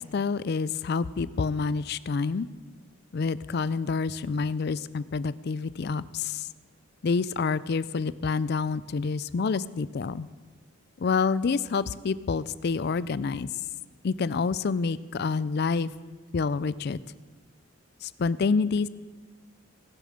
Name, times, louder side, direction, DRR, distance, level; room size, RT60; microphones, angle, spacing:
voice 1, 0.0-2.5 3.1-6.5 7.0-10.3 11.0-13.5 14.0-15.9 16.3-17.0 18.0-18.9, left 4 dB, 50° left, 18 dB, 0.4 m, -28 dB
18.5 x 6.8 x 6.5 m, 1.3 s
head